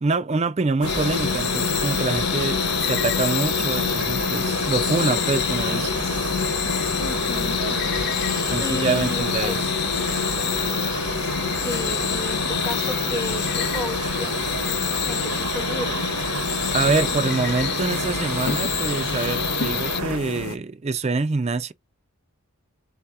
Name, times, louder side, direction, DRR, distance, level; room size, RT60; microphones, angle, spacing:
voice 1, 0.0-5.9 8.5-9.6 16.7-21.7, right 3 dB, 30° right, 0.4 m, -25 dB
sound 1, 0.8-20.6, left 5 dB, 70° left, 0.7 m, -29 dB
sound 2, 0.8-20.2, right 5 dB, 70° right, 0.8 m, -31 dB
sound 3, 0.9-20.0, left 12 dB, 50° left, 0.3 m, -28 dB
voice 2, 7.0-7.9 8.2-9.6 11.6-14.7 15.1-16.0, left 2 dB, 10° left, 0.8 m, -33 dB
4.0 x 2.8 x 3.5 m
head